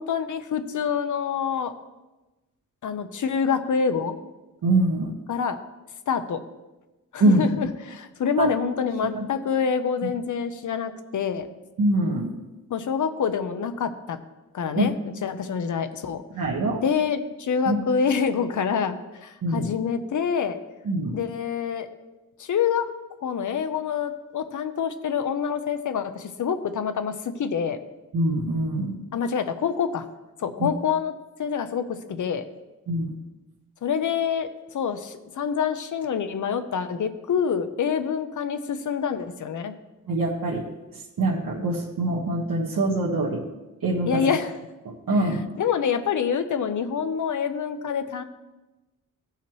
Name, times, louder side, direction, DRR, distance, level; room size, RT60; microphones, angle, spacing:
voice 1, 0.0-1.7 2.8-4.1 5.3-5.6 6.1-6.4 7.1-11.5 12.7-14.2 14.5-14.9 15.2-16.2 16.8-20.6 21.1-21.9 22.4-22.9 23.2-27.8 29.1-30.0 30.4-31.1 31.4-32.4 33.8-39.7 44.1-44.5 45.2-48.2, left 7 dB, 65° left, 10 dB, 0.7 m, -26 dB
voice 2, 4.6-5.1 7.2-7.4 8.4-8.5 9.1-9.2 11.8-12.3 14.7-14.9 16.3-16.8 17.7-17.8 19.4-19.7 20.9-21.1 28.1-29.0 30.6-30.7 32.9-33.1 40.1-40.6 40.9-43.4 43.8-44.2 44.8-45.4, right 2 dB, 80° right, -5 dB, 1.5 m, -24 dB
16.5 x 5.7 x 3.0 m, 1.1 s
wide cardioid pair, 160°, 33 cm